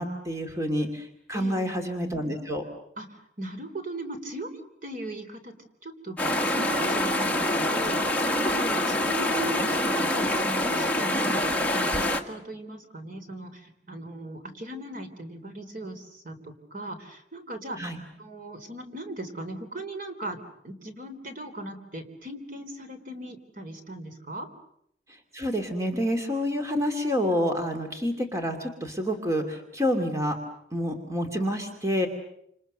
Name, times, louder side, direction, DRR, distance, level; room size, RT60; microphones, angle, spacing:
voice 1, 0.0-2.6 17.8-18.0 25.3-30.4 30.7-32.1, equal, 20° right, 4 dB, 2.5 m, -28 dB
voice 2, 1.3-1.7 3.0-5.5 5.8-17.9 18.2-20.4 20.6-24.5, right 1 dB, 50° right, 6 dB, 3.6 m, -39 dB
sound 1, 6.2-12.2, left 1 dB, 10° left, 1.8 m, -25 dB
28.5 x 28.0 x 6.7 m, 0.72 s
head